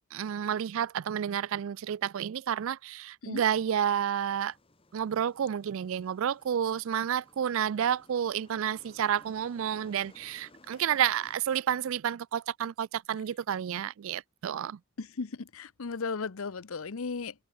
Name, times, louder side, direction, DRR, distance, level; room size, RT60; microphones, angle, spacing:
voice 1, 0.1-4.5 4.9-14.8, right 9 dB, 70° right, 0.3 m, -30 dB
sound 1, 3.8-11.4, left 2 dB, 25° left, 1.6 m, -60 dB
voice 2, 15.0-17.3, left 4 dB, 75° left, 0.7 m, -36 dB
open air
head